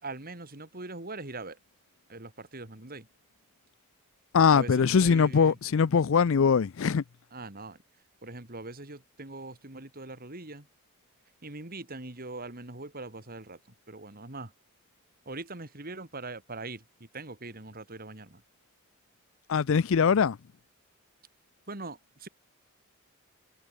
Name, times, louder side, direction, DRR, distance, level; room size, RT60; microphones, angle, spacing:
voice 1, 0.0-1.6 2.1-3.1 4.5-5.6 7.3-7.8 8.2-10.7 11.4-13.6 13.9-14.5 15.2-18.4 21.7-22.3, right 2 dB, 40° right, 3.2 m, -42 dB
voice 2, 4.3-7.0 19.5-20.4, left 6 dB, 60° left, 0.4 m, -22 dB
head